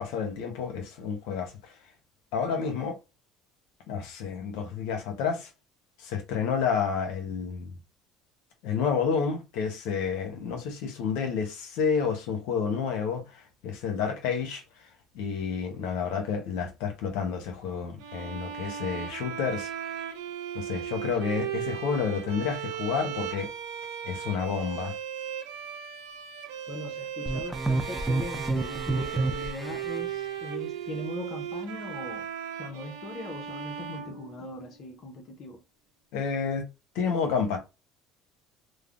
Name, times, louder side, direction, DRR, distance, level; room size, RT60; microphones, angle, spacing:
voice 1, 0.0-1.7 2.3-3.0 3.9-5.5 6.0-7.8 8.6-14.6 15.1-19.7 20.5-23.5 24.0-24.9 36.1-36.7 36.9-37.6, left 6 dB, 80° left, 0.9 m, -30 dB
sound 1, 18.0-34.8, right 9 dB, 90° right, 0.6 m, -37 dB
voice 2, 26.7-32.3 32.6-35.6, left 2 dB, 50° left, 0.6 m, -40 dB
sound 2, 27.3-30.0, right 3 dB, 10° right, 0.4 m, -29 dB
3.2 x 2.1 x 2.5 m
supercardioid pair, 100°, 0 cm